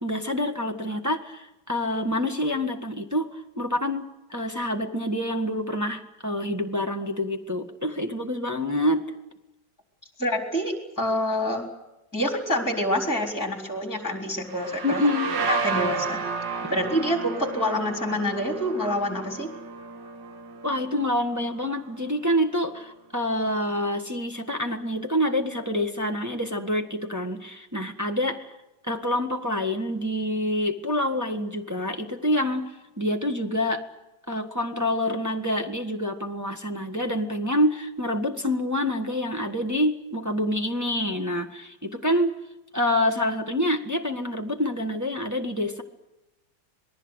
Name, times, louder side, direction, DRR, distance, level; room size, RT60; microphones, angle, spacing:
voice 1, 0.0-9.0 14.8-15.3 20.6-28.5 28.8-33.8 34.3-42.4 42.7-45.8, left 1 dB, 10° right, 2 dB, 1.5 m, -27 dB
voice 2, 10.2-11.7 12.1-15.0 15.5-16.2 16.7-19.5, equal, 10° left, 4 dB, 3.8 m, -26 dB
sound 1, 14.5-22.0, right 4 dB, 75° right, 2.3 m, -32 dB
27.0 x 20.0 x 8.1 m, 0.95 s
omnidirectional pair, 2.0 m